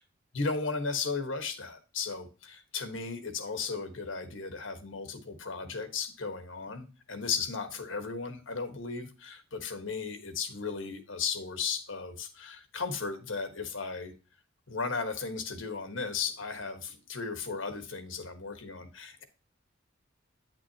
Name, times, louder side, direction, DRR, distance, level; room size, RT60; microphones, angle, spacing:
voice 1, 0.3-14.1 14.7-19.2, left 5 dB, 75° left, 7 dB, 1.4 m, -35 dB
9.2 x 6.1 x 2.9 m, 0.33 s
head